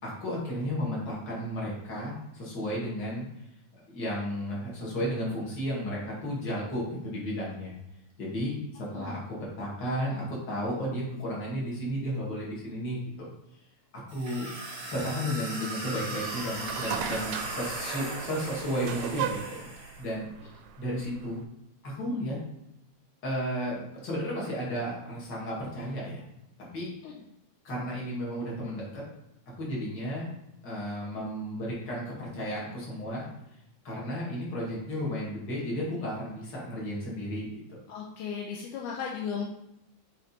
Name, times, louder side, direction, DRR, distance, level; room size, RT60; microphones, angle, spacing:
voice 1, 0.0-3.2 3.9-7.7 8.2-13.3 13.9-14.5 14.9-19.6 20.0-20.3 20.8-21.4 21.8-22.4 23.2-26.2 26.7-26.9 27.6-29.1 29.6-30.3 30.6-33.3 33.8-37.8, equal, 35° left, -5 dB, 2.5 m, -33 dB
sound 1, 14.1-20.0, right 2 dB, 35° right, 1.1 m, -38 dB
sound 2, 16.2-21.4, right 8 dB, 85° right, 2.3 m, -37 dB
voice 2, 37.9-39.4, left 7 dB, 80° left, -2 dB, 2.1 m, -35 dB
7.7 x 4.1 x 4.2 m, 0.85 s
omnidirectional pair, 3.7 m